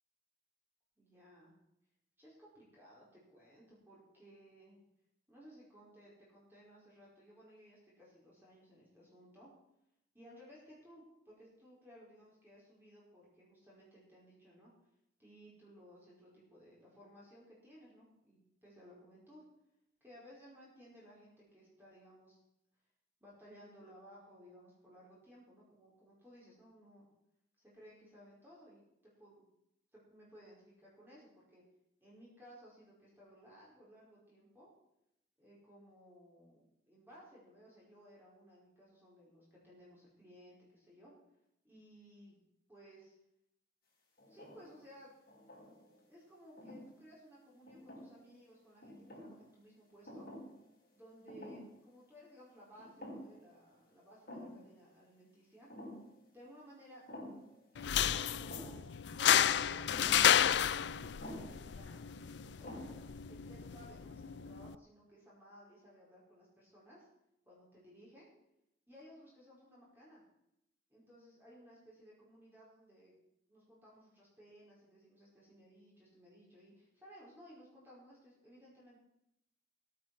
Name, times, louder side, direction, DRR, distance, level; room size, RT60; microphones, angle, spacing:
voice 1, 1.0-1.5 2.2-4.8 5.3-9.5 10.1-14.7 15.2-19.4 20.0-22.4 23.2-27.1 27.6-28.8 29.2-29.4 30.1-31.6 32.0-34.7 35.4-41.1 41.6-42.4 42.7-43.1 44.2-45.1 46.1-50.3 50.9-55.7 56.3-57.0 57.7-62.0 62.4-63.0 63.3-67.1 67.5-68.3 68.9-70.2 70.9-73.1 73.5-79.0, equal, 10° right, -6 dB, 5.2 m, -59 dB
sound 1, 44.2-44.8 45.3-46.0 46.6-46.9 47.7-48.4 48.8-49.4 50.1-50.6 50.8-50.9 51.3-51.8 52.1-52.2 52.8-53.5 53.7-53.8 54.3-54.7 55.7-56.1 57.1-57.5 58.5-58.9 59.9-60.3 61.2-61.6 62.2-62.3 62.6-63.1, equal, 50° left, 5.4 m, -49 dB
sound 2, 57.8-64.8, left 9 dB, 75° left, 0.4 m, -32 dB
16.5 x 9.6 x 6.3 m, 0.80 s
head